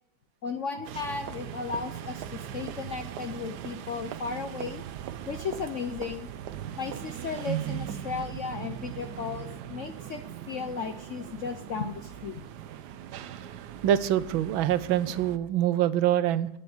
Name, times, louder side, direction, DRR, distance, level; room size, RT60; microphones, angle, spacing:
voice 1, 0.4-4.8 5.3-6.3 6.8-10.2 10.5-12.4, left 5 dB, 65° left, 7 dB, 0.7 m, -35 dB
sound 1, 0.8-15.4, right 10 dB, 65° right, 1.2 m, -39 dB
voice 2, 13.8-16.5, right 11 dB, 85° right, 15 dB, 1.5 m, -25 dB
9.6 x 7.7 x 8.6 m, 0.80 s
omnidirectional pair, 2.1 m